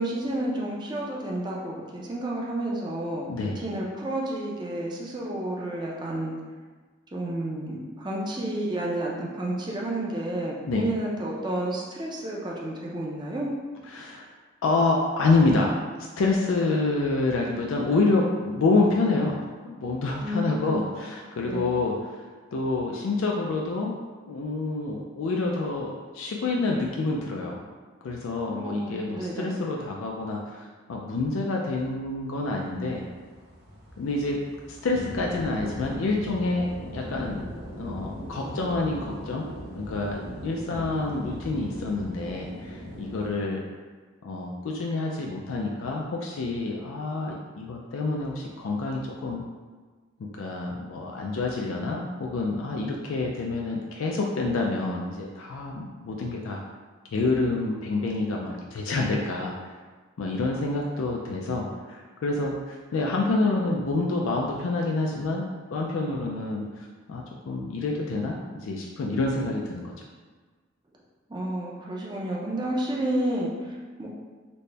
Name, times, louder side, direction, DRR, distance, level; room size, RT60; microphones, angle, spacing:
voice 1, 0.0-6.3 7.1-13.5 20.2-20.9 21.5-21.7 28.5-29.6 71.3-74.1, right 1 dB, 20° right, -3 dB, 0.5 m, -31 dB
voice 2, 3.3-3.6 10.7-10.8 13.9-14.3 14.6-19.4 19.6-22.2 22.5-23.9 24.3-27.6 28.0-33.0 34.0-34.4 34.7-37.4 37.8-39.5 39.7-43.6 44.2-49.4 50.3-56.6 57.1-59.7 60.2-69.9, left 3 dB, 85° left, -1 dB, 0.4 m, -27 dB
sound 1, 32.6-43.3, equal, 60° right, 0.9 m, -39 dB
4.1 x 2.1 x 3.3 m, 1.4 s
head